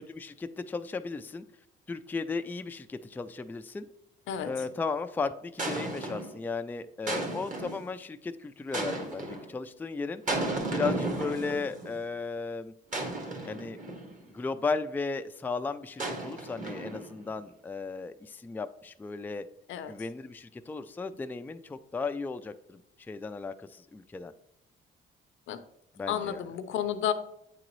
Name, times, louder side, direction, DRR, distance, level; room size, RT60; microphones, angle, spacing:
voice 1, 0.2-1.4 1.9-3.9 4.4-10.2 10.7-12.7 13.4-13.8 14.3-19.5 19.9-22.8 23.1-24.3 26.0-26.4, left 4 dB, 10° left, 9 dB, 0.3 m, -35 dB
sound 1, 4.3-4.7 5.6-6.4 7.1-7.9 8.7-9.5 10.3-11.9 12.9-14.2 16.0-17.2, right 2 dB, 40° right, 1.6 m, -34 dB
voice 2, 26.1-27.1, left 10 dB, 80° left, 10 dB, 0.6 m, -31 dB
8.4 x 3.8 x 3.1 m, 0.78 s
cardioid pair, 90°, 20 cm